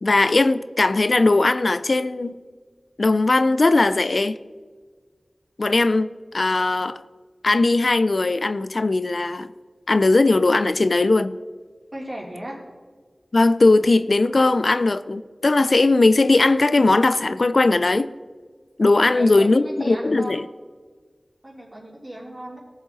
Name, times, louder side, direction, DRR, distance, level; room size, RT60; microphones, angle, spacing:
voice 1, 0.0-2.4 3.0-4.4 5.6-7.0 7.4-9.5 9.9-11.4 13.3-18.1 18.8-20.5, left 2 dB, 65° left, 0.4 m, -19 dB
voice 2, 11.9-12.6 19.0-20.4 21.4-22.6, right 1 dB, 40° right, 3.5 m, -36 dB
17.5 x 7.3 x 4.0 m
wide cardioid pair, 50°, 0 cm